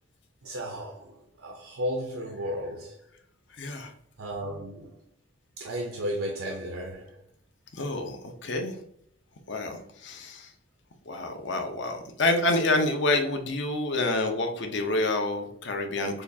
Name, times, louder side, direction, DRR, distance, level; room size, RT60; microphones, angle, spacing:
voice 1, 0.4-3.0 4.2-4.9 5.6-7.2, equal, 90° right, 0.7 m, -34 dB
voice 2, 3.5-3.9 7.7-8.8 9.5-10.5 11.1-16.2, left 2 dB, 60° left, 0.7 m, -28 dB
6.5 x 2.4 x 2.7 m
head